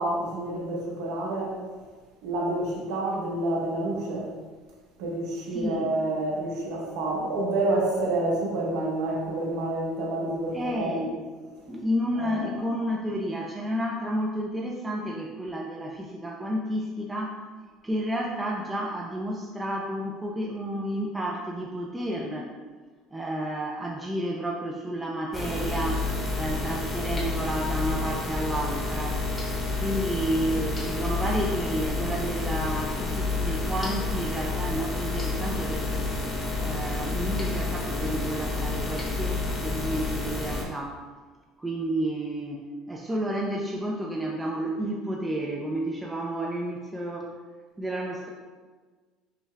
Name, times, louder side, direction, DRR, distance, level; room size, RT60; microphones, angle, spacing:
voice 1, 0.0-1.6 2.2-4.3 5.0-11.1 12.2-12.5, right 2 dB, 80° right, -2 dB, 1.1 m, -28 dB
voice 2, 5.5-5.9 10.5-11.0 11.7-17.4 17.8-22.5 23.1-29.2 29.8-36.1 36.6-41.0 41.6-47.4 47.8-48.3, right 1 dB, 10° right, -1 dB, 0.3 m, -31 dB
sound 1, 25.3-40.6, left 3 dB, 20° left, 0.8 m, -29 dB
5.6 x 2.3 x 3.2 m, 1.4 s
cardioid pair, 145°, 0 cm